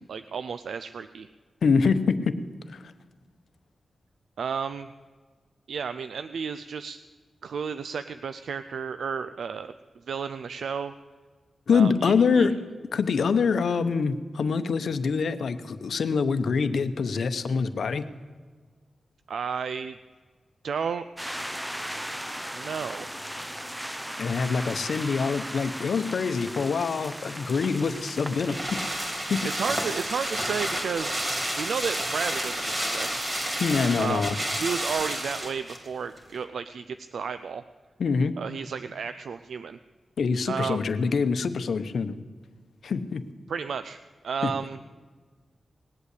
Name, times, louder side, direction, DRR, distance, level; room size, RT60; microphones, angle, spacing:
voice 1, 0.1-1.3 4.4-4.9 5.7-7.0 7.4-9.7 10.1-10.9 11.7-12.5 19.3-20.0 20.6-21.4 22.5-23.1 29.4-31.2 31.6-33.2 34.0-34.3 34.6-37.6 38.4-39.8 40.5-40.8 43.5-44.8, right 6 dB, 85° right, 11 dB, 0.4 m, -32 dB
voice 2, 1.6-2.4 2.7-2.9 11.7-12.6 12.9-18.0 24.2-29.5 33.6-34.4 38.0-38.4 40.2-42.2 42.8-43.2 44.4-44.5, left 5 dB, 80° left, 11 dB, 0.8 m, -25 dB
sound 1, 21.2-34.0, equal, 5° right, 0.6 m, -38 dB
sound 2, 27.7-35.9 36.2-36.3, right 1 dB, 30° right, 3.3 m, -31 dB
19.0 x 8.2 x 8.3 m, 1.5 s
cardioid pair, 75°, 0 cm